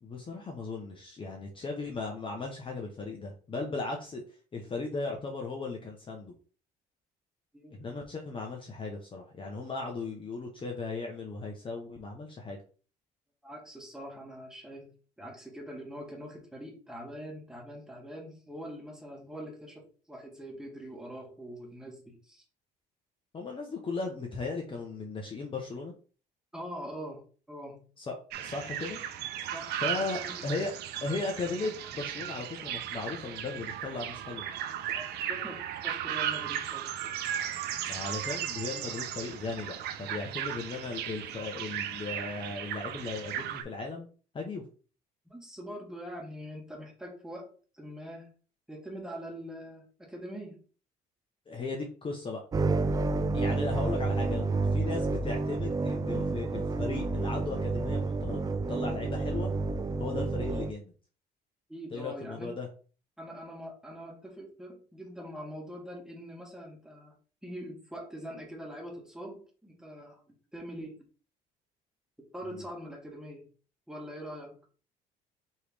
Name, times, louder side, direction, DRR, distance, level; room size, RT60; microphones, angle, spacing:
voice 1, 0.0-4.2 4.5-6.3 7.7-12.6 23.3-25.9 28.0-29.0 29.8-30.7 31.0-34.4 37.9-44.1 44.3-44.6 51.5-52.4 53.3-59.5 60.0-60.9 61.9-62.7 72.5-72.6, left 3 dB, 30° left, 1 dB, 0.9 m, -37 dB
voice 2, 13.4-14.9 15.2-22.4 26.5-27.8 29.5-30.5 34.9-35.6 35.8-37.1 45.2-47.5 47.7-48.3 48.7-50.6 61.7-62.6 63.2-67.1 67.4-70.2 70.5-71.0 72.3-73.5 73.9-74.6, equal, 5° right, -1 dB, 1.7 m, -43 dB
sound 1, 28.3-43.6, right 10 dB, 75° right, 0.6 m, -36 dB
sound 2, 52.5-60.7, right 3 dB, 20° right, 0.3 m, -30 dB
4.5 x 3.2 x 3.5 m, 0.38 s
cardioid pair, 110°, 17 cm